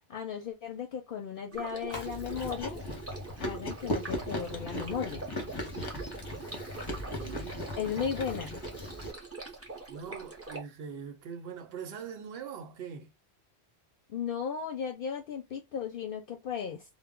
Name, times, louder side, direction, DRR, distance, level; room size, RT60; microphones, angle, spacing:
voice 1, 0.1-2.8 3.4-5.2 7.8-8.6 14.1-16.8, left 7 dB, 60° left, 0.7 m, -35 dB
Stream, 1.5-10.6, right 4 dB, 15° right, 0.6 m, -43 dB
Chewing mastication, 1.9-9.1, left 1 dB, 25° left, 0.7 m, -38 dB
voice 2, 6.9-7.7 8.0-8.2 9.9-13.1, right 7 dB, 70° right, 0.8 m, -42 dB
2.1 x 2.0 x 3.6 m
omnidirectional pair, 1.1 m